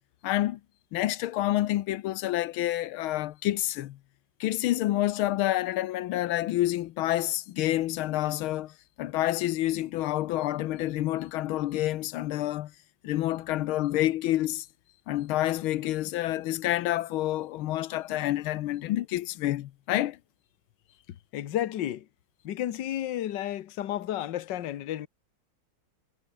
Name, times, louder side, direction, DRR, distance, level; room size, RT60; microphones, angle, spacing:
voice 1, 0.2-0.6 0.9-4.0 4.4-12.7 13.0-14.7 15.1-20.2, left 15 dB, 90° left, 1.6 m, -28 dB
voice 2, 21.3-22.1 22.4-25.1, left 12 dB, 65° left, 1.6 m, -32 dB
omnidirectional pair, 2.2 m